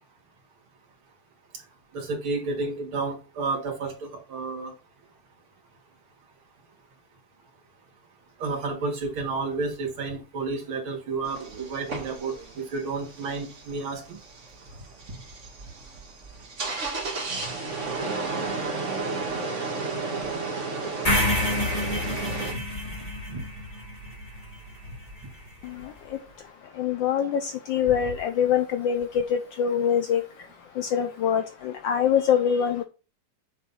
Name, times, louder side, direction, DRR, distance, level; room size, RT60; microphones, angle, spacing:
voice 1, 1.9-4.7 8.4-14.2 23.3-23.4, right 3 dB, 70° right, 2 dB, 2.6 m, -31 dB
sound 1, 11.3-22.5, right 3 dB, 35° right, 1.6 m, -33 dB
sound 2, 21.0-25.2, left 1 dB, 20° left, 1.8 m, -28 dB
voice 2, 26.8-29.1 29.6-30.2 30.8-32.8, left 8 dB, 70° left, 7 dB, 1.2 m, -24 dB
7.5 x 3.4 x 5.5 m, 0.33 s
omnidirectional pair, 2.4 m